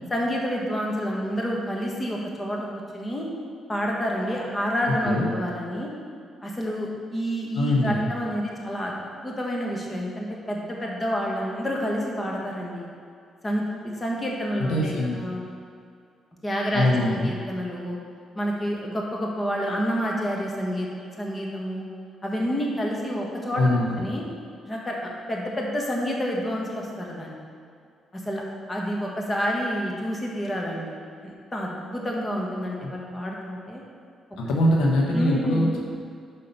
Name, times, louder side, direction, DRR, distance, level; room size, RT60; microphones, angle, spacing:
voice 1, 0.1-3.3 3.7-5.9 6.4-12.9 13.4-15.4 16.4-18.0 18.3-20.9 21.2-21.8 22.2-23.6 24.0-24.2 24.6-27.4 28.1-28.4 28.7-33.8 35.1-35.7, equal, 20° left, -2 dB, 1.4 m, -29 dB
voice 2, 7.5-8.1 14.6-15.2 16.7-17.3 23.5-24.0 32.8-32.9 34.4-35.8, left 1 dB, 85° left, -1 dB, 1.0 m, -23 dB
5.6 x 5.4 x 5.4 m, 2.3 s
cardioid pair, 90°, 0 cm